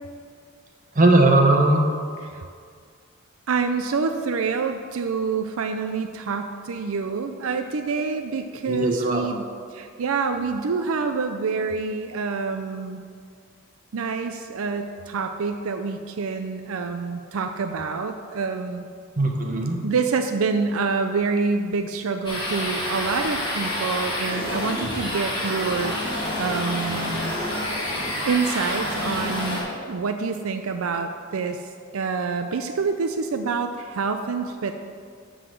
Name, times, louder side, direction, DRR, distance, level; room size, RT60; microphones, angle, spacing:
voice 1, 0.9-1.9 8.7-9.3 19.2-19.8, right 2 dB, 40° right, 2 dB, 1.1 m, -18 dB
voice 2, 3.5-13.0 13.9-18.8 19.8-27.3 28.3-31.6 31.9-34.8, right 4 dB, 85° right, 6 dB, 0.5 m, -27 dB
sound 1, 22.2-29.6, left 1 dB, 25° left, 2.5 m, -28 dB
11.5 x 3.9 x 7.7 m, 2.1 s
head